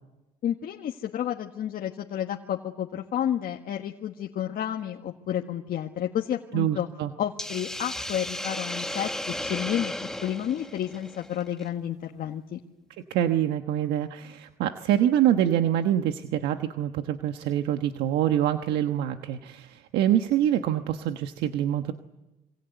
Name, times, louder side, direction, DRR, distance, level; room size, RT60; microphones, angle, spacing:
voice 1, 0.4-6.9 7.2-9.9 10.2-12.6, left 10 dB, 60° left, 2 dB, 1.7 m, -31 dB
voice 2, 6.5-7.1 13.1-21.9, right 11 dB, 85° right, 7 dB, 1.3 m, -25 dB
Hiss, 7.4-11.7, left 1 dB, 5° left, 1.6 m, -35 dB
27.0 x 25.0 x 8.1 m, 1.0 s
cardioid pair, 110°, 17 cm